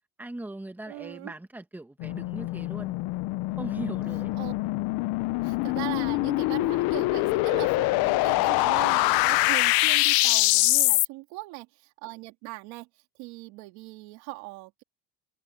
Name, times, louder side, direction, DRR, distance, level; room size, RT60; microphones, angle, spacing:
voice 1, 0.2-3.0 3.6-4.3, right 1 dB, 5° right, 1.5 m, -39 dB
voice 2, 0.9-1.3 4.3-4.5 5.4-12.9 13.2-14.8, right 23 dB, 90° right, 3.1 m, -40 dB
sound 1, 2.0-11.1, left 22 dB, 70° left, 0.7 m, -24 dB
cardioid pair, 145°, 38 cm